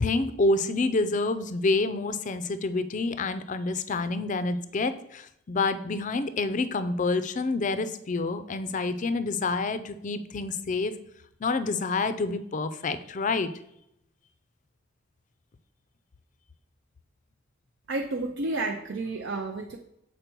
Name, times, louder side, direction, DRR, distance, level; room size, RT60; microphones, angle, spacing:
voice 1, 0.0-10.9 11.4-13.5, left 3 dB, 40° left, 12 dB, 0.4 m, -28 dB
voice 2, 17.9-19.8, right 2 dB, 65° right, 3 dB, 0.5 m, -31 dB
6.7 x 4.3 x 4.5 m, 0.78 s
head